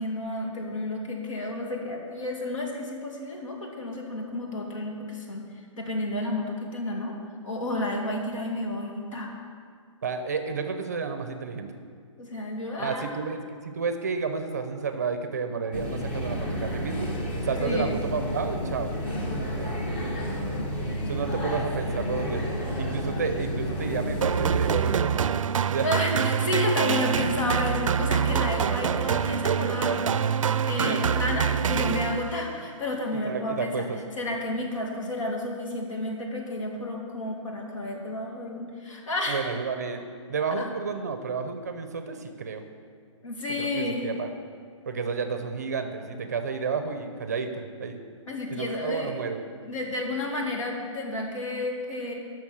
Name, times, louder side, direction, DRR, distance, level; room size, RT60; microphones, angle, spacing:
voice 1, 0.0-5.5 5.8-7.2 7.4-9.3 12.2-13.2 17.6-18.0 25.8-30.0 30.6-33.9 34.2-39.4 40.6-40.7 43.2-44.1 48.3-49.1 49.6-52.1, left 2 dB, 75° left, 0 dB, 2.5 m, -31 dB
voice 2, 10.0-11.7 12.8-17.1 17.4-18.9 19.6-20.0 21.1-25.3 25.7-25.9 30.8-31.0 33.2-34.0 39.3-40.0 40.3-42.6 43.6-44.3 44.9-48.0 48.5-49.4, right 5 dB, 30° right, 8 dB, 0.6 m, -31 dB
sound 1, 15.7-25.0, equal, 20° left, 1.0 m, -31 dB
sound 2, 24.2-32.5, right 7 dB, 80° right, 0.4 m, -25 dB
11.0 x 6.1 x 7.2 m, 2.1 s
hypercardioid pair, 180°, 17 cm